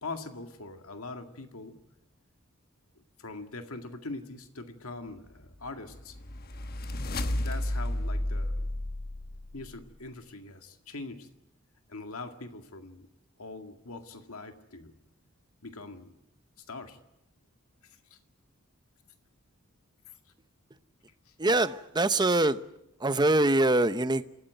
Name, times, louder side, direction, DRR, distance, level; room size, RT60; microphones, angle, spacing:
voice 1, 0.0-1.8 3.2-6.2 7.2-8.6 9.5-11.3 11.9-13.1 13.4-15.0 15.6-16.2 16.6-17.0 18.1-18.2 20.1-20.2 21.3-21.4, left 3 dB, 80° left, 2.1 m, -42 dB
sound 1, 5.6-9.9, left 1 dB, 45° left, 1.1 m, -32 dB
voice 2, 21.4-22.6 23.0-24.2, right 2 dB, 20° right, 0.8 m, -24 dB
28.0 x 14.5 x 9.2 m
head